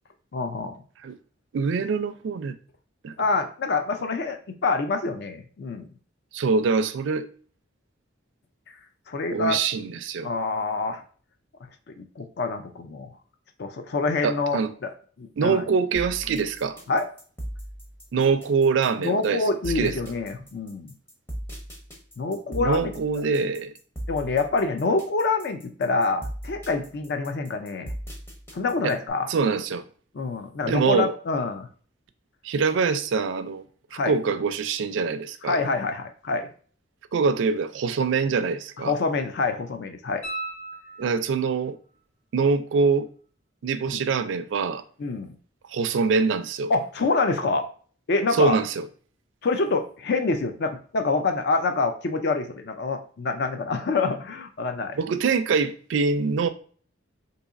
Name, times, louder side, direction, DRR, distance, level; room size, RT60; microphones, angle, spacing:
voice 1, 0.3-0.8 3.2-5.9 9.1-9.6 10.2-11.0 12.0-13.1 13.6-14.9 15.2-15.7 16.9-17.1 19.0-20.9 22.2-22.9 24.1-27.9 28.5-29.3 30.1-31.7 33.9-34.1 35.4-36.5 38.8-40.2 43.9-44.0 45.0-45.3 46.7-47.6 48.1-48.6 49.4-55.0, left 3 dB, 55° left, 0.4 m, -26 dB
voice 2, 1.5-2.6 3.0-3.1 6.3-7.3 9.3-10.3 14.2-14.7 15.4-16.8 18.1-19.4 19.8-20.0 22.6-23.7 28.8-28.9 29.3-29.8 30.7-31.1 32.4-33.6 33.9-35.6 37.1-38.9 41.0-41.8 42.3-43.1 43.6-44.8 45.7-46.7 48.4-48.9 55.0-56.5, right 5 dB, 65° right, 0.3 m, -24 dB
sound 1, 15.9-29.1, right 1 dB, 10° left, 0.7 m, -38 dB
sound 2, 40.2-41.6 44.3-44.4, right 2 dB, 75° left, 1.7 m, -36 dB
4.0 x 2.7 x 2.4 m
head